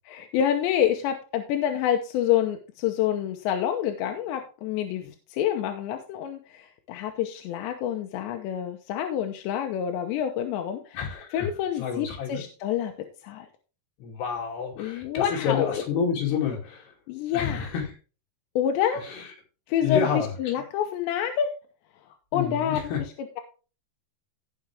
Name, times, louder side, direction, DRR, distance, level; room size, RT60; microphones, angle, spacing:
voice 1, 0.1-5.0 5.3-11.0 11.3-12.9 13.2-13.5 14.8-15.8 17.1-17.7 18.6-19.0 19.7-21.5 22.3-23.4, left 10 dB, 90° left, 4 dB, 3.2 m, -27 dB
voice 2, 10.9-11.5 11.8-12.4 14.0-16.9 17.3-17.8 19.8-20.3 22.3-23.0, left 7 dB, 70° left, 0 dB, 4.7 m, -28 dB
17.0 x 6.0 x 3.4 m, 0.35 s
omnidirectional pair, 4.9 m